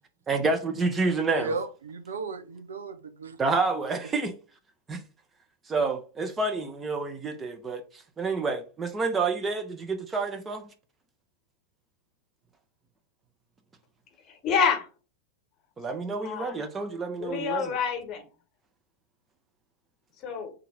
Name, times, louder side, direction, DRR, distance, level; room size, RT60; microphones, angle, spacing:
voice 1, 0.3-1.5 3.4-4.3 4.9-5.0 5.7-10.7 15.8-17.8, right 3 dB, 20° right, 0.7 m, -29 dB
voice 2, 1.3-3.4, right 3 dB, 70° right, 0.6 m, -35 dB
voice 3, 14.3-14.9 16.2-16.5 17.2-18.3 20.2-20.5, left 6 dB, 30° left, 1.2 m, -27 dB
3.8 x 2.8 x 4.7 m
figure-of-eight pair, 90°, 0 cm